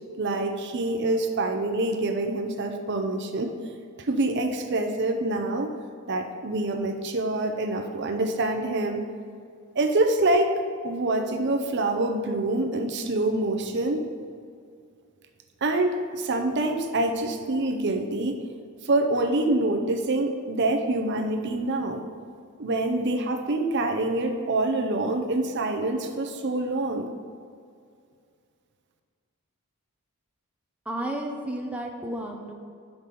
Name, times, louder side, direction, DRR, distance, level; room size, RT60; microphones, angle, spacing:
voice 1, 0.2-3.5 4.0-5.7 6.1-9.0 9.8-10.6 10.8-14.0 15.6-18.5 18.8-22.0 22.6-27.1, right 2 dB, 50° right, 4 dB, 0.6 m, -26 dB
voice 2, 30.9-32.5, right 1 dB, 5° right, 0 dB, 0.6 m, -32 dB
5.9 x 5.4 x 6.6 m, 2.3 s
head